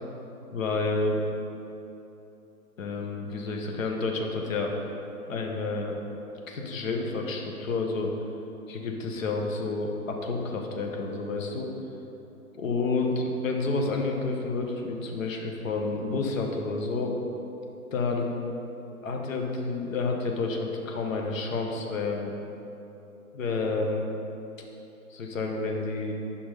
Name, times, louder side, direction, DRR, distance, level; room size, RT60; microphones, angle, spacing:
voice 1, 0.5-1.2 2.8-4.7 5.3-6.0 6.5-8.1 8.7-11.7 12.5-17.2 17.9-18.3 18.8-22.3 23.3-24.1 25.1-26.1, left 3 dB, 60° left, 2 dB, 1.2 m, -29 dB
5.7 x 5.6 x 5.0 m, 2.9 s
figure-of-eight pair, 130°, 45 cm